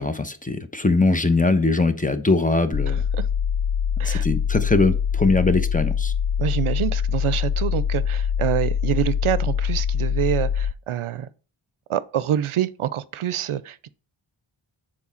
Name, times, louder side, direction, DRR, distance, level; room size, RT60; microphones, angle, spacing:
voice 1, 0.0-3.0 4.0-6.1, left 3 dB, 15° left, 0.7 m, -21 dB
sound 1, 2.7-10.7, left 7 dB, 55° left, 0.6 m, -24 dB
voice 2, 2.9-3.3 4.0-4.3 6.4-11.3 11.9-13.9, right 11 dB, 80° right, 0.6 m, -26 dB
7.1 x 4.4 x 4.3 m
wide cardioid pair, 50°, 49 cm